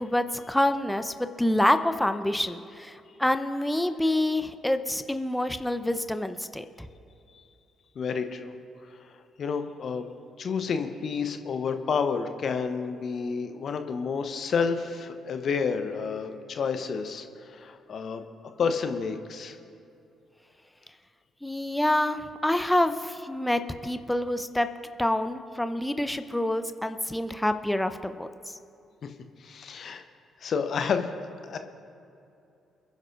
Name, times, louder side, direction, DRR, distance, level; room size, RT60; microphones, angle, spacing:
voice 1, 0.0-6.7 21.4-24.7 25.0-28.6, left 1 dB, 10° left, 9 dB, 0.8 m, -27 dB
voice 2, 8.0-8.5 9.4-10.1 10.4-18.2 18.6-19.6 29.0-29.1 29.4-30.0 30.4-31.6, left 5 dB, 50° left, 8 dB, 0.8 m, -30 dB
28.5 x 10.5 x 2.6 m, 2.6 s
figure-of-eight pair, 40°, 0 cm